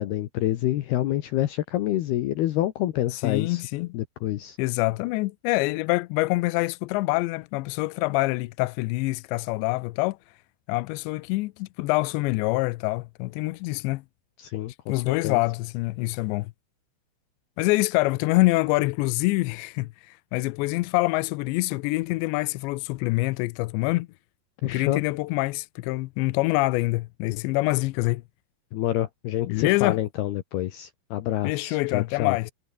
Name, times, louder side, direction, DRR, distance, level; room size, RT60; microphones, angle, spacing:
voice 1, 0.0-3.6 3.9-4.6 14.4-15.4 24.6-25.0 28.7-32.4, left 14 dB, 70° left, 2.5 m, -27 dB
voice 2, 3.2-3.9 4.6-10.2 10.7-14.0 14.9-16.5 17.6-24.1 24.6-28.2 29.5-30.0 31.4-32.5, left 22 dB, 90° left, 2.6 m, -25 dB
omnidirectional pair, 5.8 m